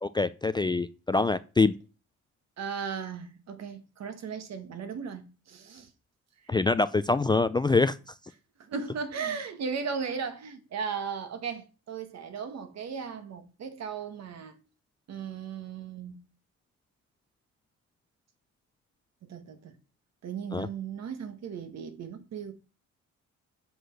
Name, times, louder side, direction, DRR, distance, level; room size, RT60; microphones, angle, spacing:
voice 1, 0.0-1.7 6.5-8.0 20.5-20.7, left 3 dB, 15° left, 0.4 m, -25 dB
voice 2, 2.6-5.9 8.6-14.6 15.1-16.2 19.2-19.7 20.2-22.5, right 6 dB, 60° right, 1.6 m, -36 dB
7.8 x 5.9 x 6.5 m
cardioid pair, 125°, 29 cm